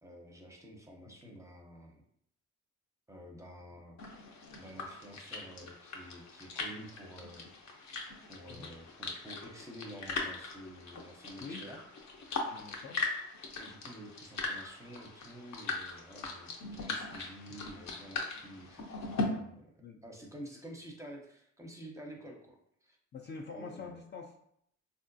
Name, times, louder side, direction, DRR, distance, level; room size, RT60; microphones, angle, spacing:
voice 1, 0.0-2.0 3.1-4.0 4.5-7.5 8.3-11.8 13.6-19.7 20.0-22.6 22.8-23.0 23.5-24.0, equal, 10° right, 1 dB, 0.6 m, -49 dB
sound 1, 4.0-19.2, left 3 dB, 65° left, 0.7 m, -40 dB
voice 2, 12.5-13.0 19.8-20.0 23.1-24.3, left 4 dB, 35° left, 1 dB, 0.4 m, -45 dB
3.5 x 2.5 x 2.6 m, 0.70 s
cardioid pair, 90°, 30 cm